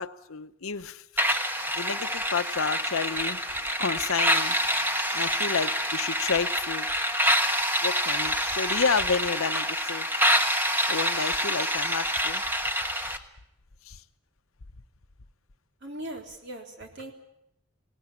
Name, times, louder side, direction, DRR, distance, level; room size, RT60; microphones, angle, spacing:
voice 1, 0.0-1.3 1.7-4.6 5.1-6.9 7.8-10.2 10.9-12.4 13.8-14.0, left 5 dB, 70° left, 11 dB, 0.9 m, -31 dB
sound 1, 1.2-13.2, equal, 10° right, 1.3 m, -26 dB
voice 2, 15.8-17.1, right 1 dB, 55° right, 3 dB, 3.7 m, -39 dB
20.0 x 18.5 x 9.8 m, 0.79 s
head